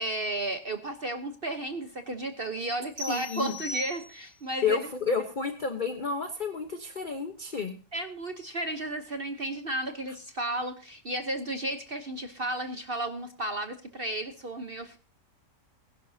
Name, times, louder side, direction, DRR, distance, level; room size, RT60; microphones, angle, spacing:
voice 1, 0.0-4.9 7.9-15.0, right 1 dB, 40° right, 7 dB, 1.0 m, -33 dB
sound 1, 3.0-4.5, left 1 dB, 70° right, 5.2 m, -39 dB
voice 2, 3.1-3.5 4.6-7.8, left 5 dB, 35° left, 7 dB, 1.1 m, -30 dB
21.0 x 11.0 x 2.8 m, 0.34 s
omnidirectional pair, 1.8 m